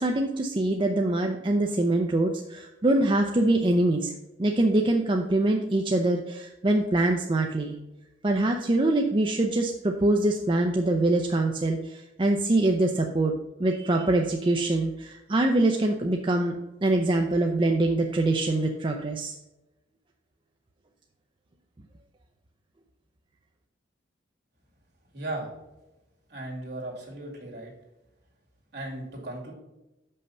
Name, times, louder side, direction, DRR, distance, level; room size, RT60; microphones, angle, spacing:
voice 1, 0.0-4.1 4.4-7.8 8.2-13.3 13.6-16.5 16.8-19.4, right 2 dB, 25° right, 3 dB, 0.5 m, -24 dB
voice 2, 25.1-25.5 26.3-27.7 28.7-29.5, right 1 dB, 55° right, -2 dB, 2.4 m, -36 dB
6.3 x 5.5 x 5.4 m, 1.0 s
head